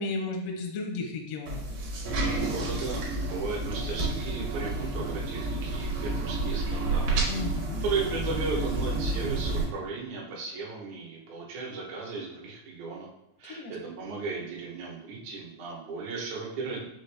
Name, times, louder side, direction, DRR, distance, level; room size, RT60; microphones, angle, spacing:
voice 1, 0.0-1.6 7.3-7.8 13.5-13.9, left 3 dB, 80° left, 2 dB, 1.4 m, -34 dB
sound 1, 1.5-9.6, right 2 dB, 85° right, 2.6 m, -30 dB
voice 2, 2.5-7.0 7.8-13.1 13.4-16.8, right 4 dB, 70° right, -3 dB, 2.3 m, -35 dB
5.8 x 2.5 x 3.2 m, 0.88 s
omnidirectional pair, 3.7 m